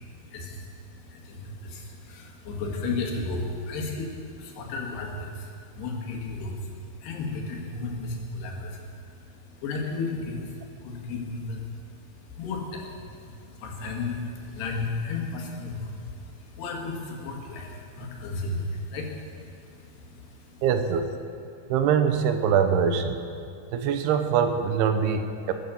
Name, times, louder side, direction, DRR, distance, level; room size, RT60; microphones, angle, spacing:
voice 1, 0.0-20.6, left 3 dB, 85° left, 0 dB, 3.9 m, -34 dB
voice 2, 20.6-21.1 21.7-23.2 23.7-25.5, right 7 dB, 90° right, 8 dB, 2.9 m, -23 dB
21.0 x 8.5 x 6.8 m, 2.4 s
omnidirectional pair, 4.6 m